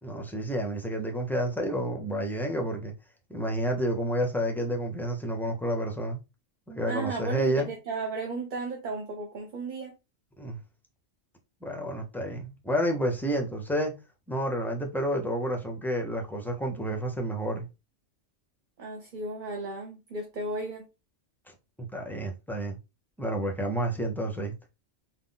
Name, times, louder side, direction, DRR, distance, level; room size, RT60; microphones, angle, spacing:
voice 1, 0.0-2.9 3.3-6.2 6.7-7.7 10.4-10.6 11.6-14.0 14.3-17.7 21.9-22.8 23.2-24.5, equal, ahead, 0.6 m, -30 dB
voice 2, 6.8-9.9 18.8-20.9, right 3 dB, 45° right, 0.8 m, -34 dB
3.9 x 2.4 x 3.8 m
omnidirectional pair, 1.3 m